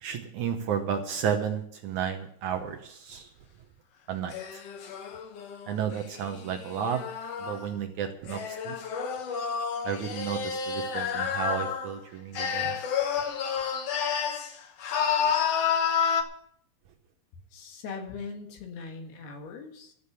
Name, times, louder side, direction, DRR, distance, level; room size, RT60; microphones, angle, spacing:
voice 1, 0.0-3.3 4.1-4.6 5.7-7.0 7.4-8.8 9.8-12.8, right 8 dB, 70° right, 5 dB, 1.9 m, -32 dB
sound 1, 4.3-7.7 8.3-12.0 12.4-14.5 14.8-16.2, left 7 dB, 70° left, 1.5 m, -30 dB
voice 2, 17.5-19.9, left 4 dB, 85° left, 3 dB, 4.0 m, -40 dB
13.0 x 7.3 x 8.2 m, 0.66 s
omnidirectional pair, 4.4 m